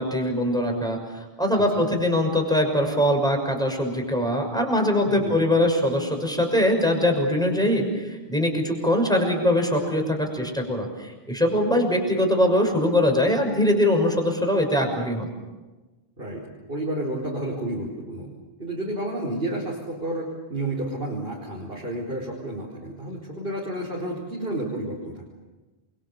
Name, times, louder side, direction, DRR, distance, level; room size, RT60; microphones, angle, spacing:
voice 1, 0.0-15.3, left 1 dB, 5° left, 2 dB, 6.2 m, -22 dB
voice 2, 1.5-1.9 5.0-5.4 16.2-16.4 16.7-18.3 18.6-25.2, right 1 dB, 60° right, -4 dB, 5.0 m, -31 dB
29.0 x 24.0 x 7.2 m, 1.2 s
omnidirectional pair, 1.1 m